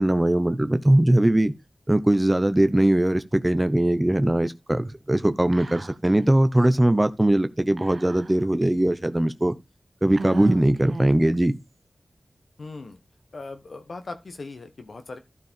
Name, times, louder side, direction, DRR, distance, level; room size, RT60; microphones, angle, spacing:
voice 1, 0.0-1.5 1.9-9.5 10.0-11.6, right 1 dB, 20° right, 0.9 m, -20 dB
Whispering, 5.5-6.2 6.5-6.6 7.8-8.6 9.2-9.3 10.1-11.4, right 3 dB, 75° right, 0.6 m, -37 dB
voice 2, 12.6-13.0 13.3-15.2, left 3 dB, 80° left, 1.1 m, -39 dB
12.5 x 4.7 x 4.5 m
cardioid pair, 45°, 0 cm